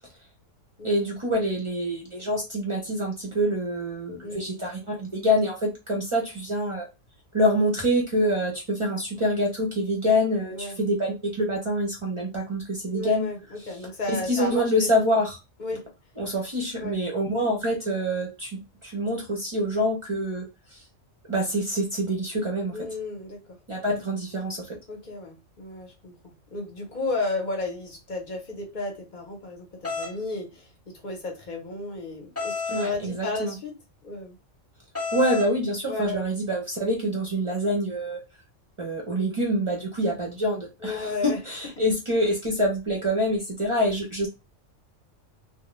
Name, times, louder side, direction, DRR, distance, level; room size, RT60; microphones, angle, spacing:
voice 1, 0.8-6.9 7.3-13.3 14.1-15.4 16.2-20.4 20.7-20.8 21.3-22.9 23.7-24.8 32.7-33.6 35.1-38.2 38.8-44.3, equal, 40° right, 0.4 m, -26 dB
voice 2, 12.9-14.9 15.6-15.9 16.8-17.0 22.7-23.6 24.9-33.8 34.0-34.4 35.9-36.2 40.8-41.4, left 3 dB, 45° left, 0.7 m, -33 dB
sound 1, 29.8-30.1 32.4-32.9 34.9-35.5, left 4 dB, 15° left, 0.8 m, -30 dB
2.3 x 2.0 x 3.0 m
omnidirectional pair, 1.3 m